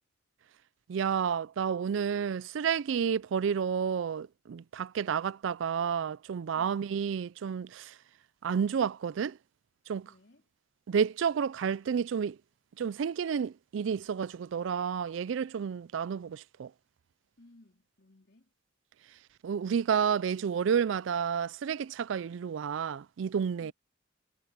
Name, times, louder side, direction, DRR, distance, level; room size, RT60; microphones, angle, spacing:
voice 1, 0.9-8.0 8.4-9.4 9.9-10.1 10.9-12.4 12.8-16.7 19.4-23.7, right 7 dB, 70° right, 0.4 m, -30 dB
voice 2, 6.5-6.9 10.0-10.5 17.4-18.5 23.6-23.7, left 2 dB, 60° left, 3.5 m, -59 dB
head